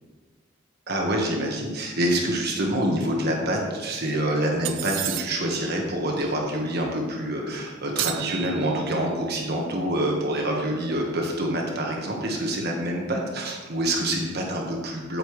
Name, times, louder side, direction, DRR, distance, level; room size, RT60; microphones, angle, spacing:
voice 1, 0.9-15.2, right 1 dB, 55° right, 0 dB, 1.3 m, -26 dB
sound 1, 4.6-5.6 8.0-9.1, right 13 dB, 70° right, 0.4 m, -32 dB
8.2 x 7.8 x 3.2 m, 1.4 s
head